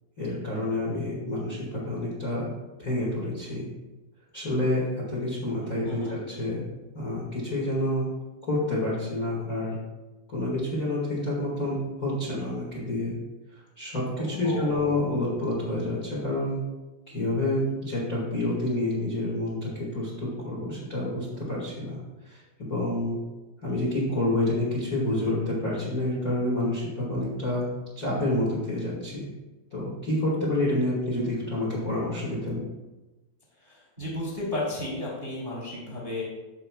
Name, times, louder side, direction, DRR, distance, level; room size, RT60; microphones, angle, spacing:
voice 1, 0.2-2.5 2.8-3.6 4.3-4.8 5.1-6.6 6.9-8.1 8.5-9.8 10.3-13.1 13.8-16.6 17.1-22.0 22.2-23.2 23.6-27.6 27.9-29.3 29.7-32.6, left 1 dB, 35° left, -6 dB, 1.5 m, -28 dB
voice 2, 5.8-6.2 14.2-15.0 33.6-36.2, left 1 dB, 20° right, -6 dB, 1.7 m, -33 dB
15.5 x 5.6 x 2.4 m, 1.1 s
omnidirectional pair, 4.3 m